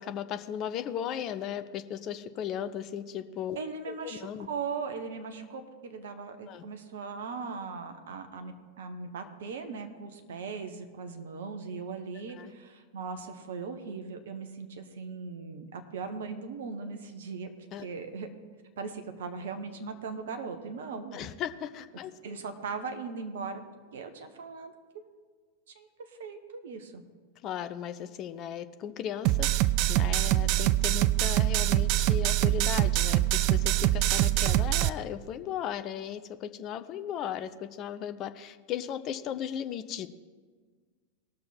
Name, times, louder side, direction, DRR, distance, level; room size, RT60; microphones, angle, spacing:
voice 1, 0.0-3.6 3.9-4.5 6.5-6.6 12.4-12.5 17.7-17.9 21.1-22.1 27.4-40.1, left 9 dB, 35° left, 10 dB, 0.6 m, -36 dB
voice 2, 3.6-17.5 17.8-18.3 18.8-21.2 22.2-23.6 23.9-24.7 25.7-27.0, right 5 dB, 60° right, 7 dB, 1.1 m, -39 dB
sound 1, 29.2-34.9, right 15 dB, 45° right, 0.3 m, -24 dB
19.0 x 6.4 x 4.4 m, 1.5 s
figure-of-eight pair, 90°, 0 cm